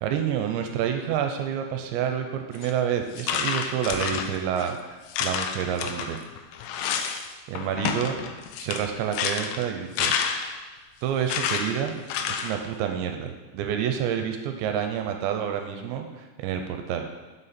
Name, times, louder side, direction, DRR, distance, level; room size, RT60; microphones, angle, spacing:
voice 1, 0.0-6.2 7.5-10.1 11.0-12.0 12.3-17.1, right 8 dB, 80° right, 5 dB, 2.7 m, -28 dB
sound 1, 2.6-2.7 3.2-4.7 5.1-7.3 7.6-10.6 11.3-12.6, left 7 dB, 85° left, 3.0 m, -29 dB
9.1 x 7.1 x 4.3 m, 1.2 s
omnidirectional pair, 5.6 m